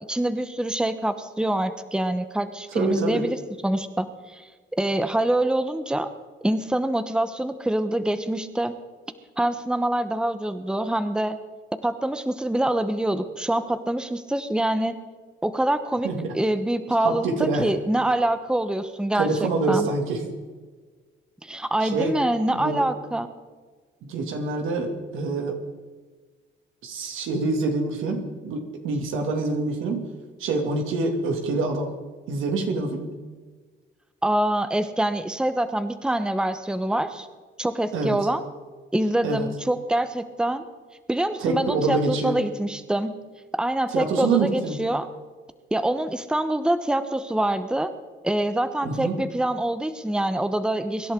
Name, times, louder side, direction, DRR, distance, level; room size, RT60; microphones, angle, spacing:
voice 1, 0.1-4.5 4.8-6.1 6.4-8.7 9.4-11.4 11.8-14.9 15.4-19.9 21.4-23.3 34.2-37.3 37.6-38.4 38.9-40.6 41.1-43.1 43.5-45.1 45.7-47.9 48.2-51.1, right 1 dB, 5° right, 10 dB, 1.0 m, -25 dB
voice 2, 2.7-3.2 16.0-16.3 17.0-17.7 19.2-20.2 21.8-22.1 22.5-22.8 24.1-25.6 26.8-30.1 30.4-31.9 32.3-33.1 37.9-38.2 39.2-39.5 41.4-42.4 43.9-44.8 48.8-49.2, right 3 dB, 85° right, 3 dB, 2.5 m, -26 dB
24.0 x 11.0 x 3.8 m, 1.4 s
cardioid pair, 90°, 20 cm